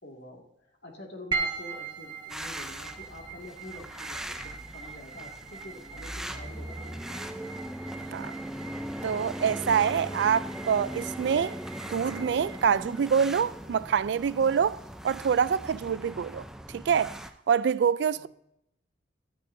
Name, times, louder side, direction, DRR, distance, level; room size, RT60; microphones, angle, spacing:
voice 1, 0.0-7.5 18.1-18.3, left 1 dB, 60° left, 2.2 m, -47 dB
sound 1, 1.3-15.8, right 4 dB, 25° right, 0.9 m, -41 dB
sound 2, 2.3-17.3, right 1 dB, 5° right, 0.5 m, -39 dB
voice 2, 9.0-11.6 11.9-14.8 15.0-16.4 16.7-17.1 17.5-18.3, right 7 dB, 65° right, 0.3 m, -25 dB
15.0 x 13.0 x 2.7 m
head